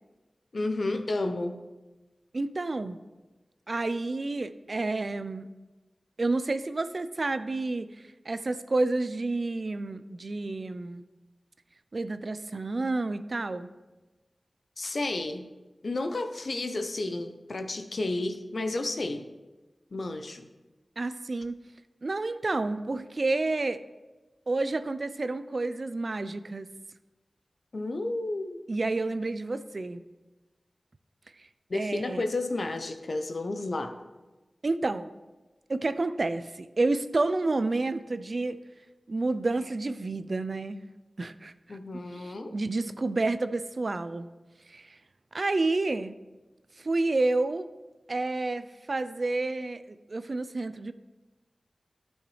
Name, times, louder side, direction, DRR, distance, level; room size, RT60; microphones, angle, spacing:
voice 1, 0.5-1.6 14.8-15.5 15.8-19.3 19.9-20.5 27.7-28.6 31.7-33.9 41.7-42.5, left 2 dB, 70° left, 8 dB, 0.7 m, -31 dB
voice 2, 2.3-3.0 3.7-5.5 6.2-8.0 8.3-11.0 11.9-13.7 21.0-21.6 22.0-23.8 24.5-26.7 28.7-30.0 31.4-31.5 31.7-32.2 34.6-35.1 35.7-38.6 39.1-40.8 41.2-41.8 42.1-44.3 44.7-45.0 45.3-46.1 46.8-47.7 48.1-50.9, right 2 dB, 60° right, 12 dB, 0.4 m, -30 dB
12.0 x 6.4 x 3.2 m, 1.2 s
wide cardioid pair, 55°, 0 cm